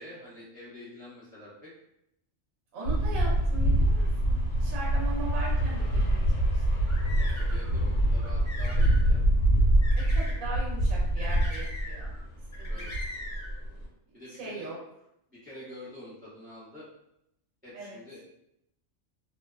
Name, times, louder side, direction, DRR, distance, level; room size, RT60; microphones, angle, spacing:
voice 1, 0.0-1.7 7.4-9.2 12.7-13.0 14.1-14.7 15.3-16.9 17.6-18.2, left 1 dB, 15° right, -9 dB, 0.3 m, -46 dB
voice 2, 2.7-6.2 6.5-6.6 10.0-12.1 12.6-12.9 14.3-14.8 17.7-18.0, right 2 dB, 85° right, -5 dB, 1.1 m, -39 dB
sound 1, 2.9-12.2 12.6-13.8, right 1 dB, 50° left, 1.0 m, -25 dB
sound 2, 6.6-7.7 8.2-9.0 9.8-10.4 11.2-12.2 12.5-13.5, left 1 dB, 25° left, 0.8 m, -42 dB
2.6 x 2.2 x 2.3 m, 0.79 s
omnidirectional pair, 1.4 m